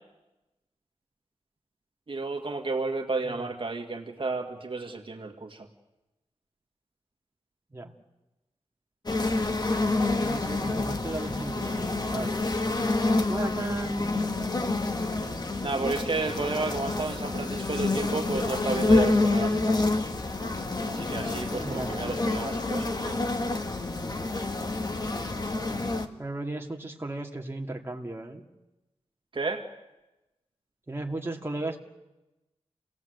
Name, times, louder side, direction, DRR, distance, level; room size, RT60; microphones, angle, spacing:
voice 1, 2.1-5.7 15.6-19.8 20.9-23.2 29.3-29.7, right 3 dB, 50° right, 3 dB, 2.0 m, -32 dB
sound 1, 9.1-26.1, left 2 dB, 40° left, 1.6 m, -28 dB
voice 2, 10.2-12.4 13.3-14.0 21.6-21.9 25.1-25.4 26.2-28.4 30.9-31.8, right 2 dB, 20° right, 0 dB, 2.2 m, -35 dB
28.5 x 18.0 x 8.0 m, 1.0 s
wide cardioid pair, 105°, 11 cm